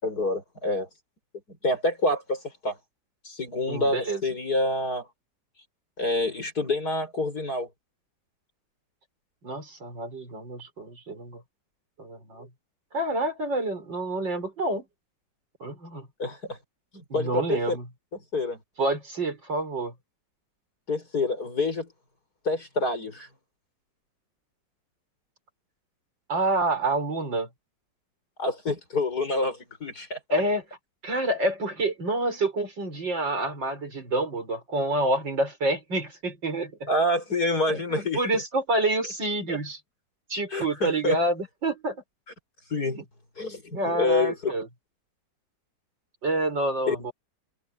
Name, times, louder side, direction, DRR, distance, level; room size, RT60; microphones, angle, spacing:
voice 1, 0.0-0.9 1.6-2.8 3.2-5.1 6.0-7.7 16.2-16.6 16.9-17.8 18.3-18.6 20.9-21.9 22.5-23.3 28.4-30.2 36.9-38.4 39.5-39.6 40.5-41.2 42.7-43.0 43.4-44.5 46.9-47.0, left 2 dB, 55° left, 6.8 m, -27 dB
voice 2, 3.7-4.2 9.4-11.4 12.0-12.5 12.9-14.9 15.6-16.1 17.1-17.9 18.8-19.9 26.3-27.5 30.3-30.6 31.0-36.9 37.7-39.8 40.3-42.0 42.9-43.0 43.7-44.7 46.2-47.1, right 2 dB, 85° right, 7.1 m, -28 dB
open air
omnidirectional pair, 1.9 m